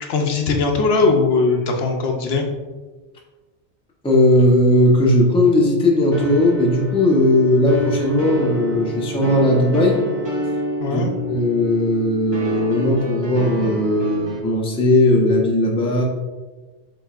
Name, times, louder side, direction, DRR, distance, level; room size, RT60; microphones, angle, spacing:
voice 1, 0.1-2.5 10.8-11.1, left 4 dB, 70° left, 3 dB, 0.8 m, -19 dB
voice 2, 4.0-10.0 10.9-16.0, left 1 dB, 5° left, -2 dB, 0.5 m, -17 dB
sound 1, 6.1-14.4, equal, 25° right, 0.8 m, -28 dB
7.2 x 3.0 x 2.4 m, 1.3 s
omnidirectional pair, 1.1 m